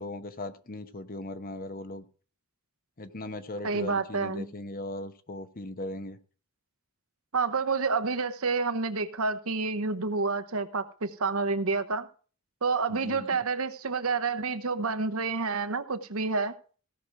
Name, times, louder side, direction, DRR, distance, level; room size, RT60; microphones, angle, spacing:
voice 1, 0.0-2.1 3.0-6.2 12.9-13.4, left 2 dB, 40° left, 10 dB, 1.0 m, -38 dB
voice 2, 3.6-4.5 7.3-12.1 12.6-16.5, right 4 dB, 70° right, 10 dB, 1.0 m, -29 dB
16.5 x 6.1 x 4.8 m, 0.39 s
head